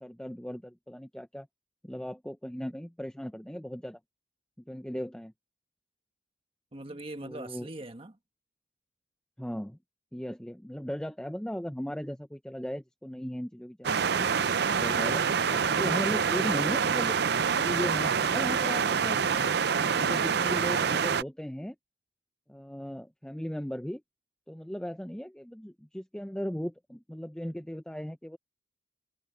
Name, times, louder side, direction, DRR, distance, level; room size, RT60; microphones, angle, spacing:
voice 1, 0.0-1.5 1.8-4.0 4.7-5.3 7.2-7.7 9.4-9.8 10.1-14.3 14.7-15.2 15.5-17.1 17.5-19.4 19.8-21.8 22.5-24.0 24.5-28.4, equal, 5° left, 0.6 m, -37 dB
voice 2, 6.7-8.2 19.8-20.1, right 2 dB, 30° right, 1.6 m, -43 dB
sound 1, 13.8-21.2, right 6 dB, 60° right, 0.6 m, -26 dB
head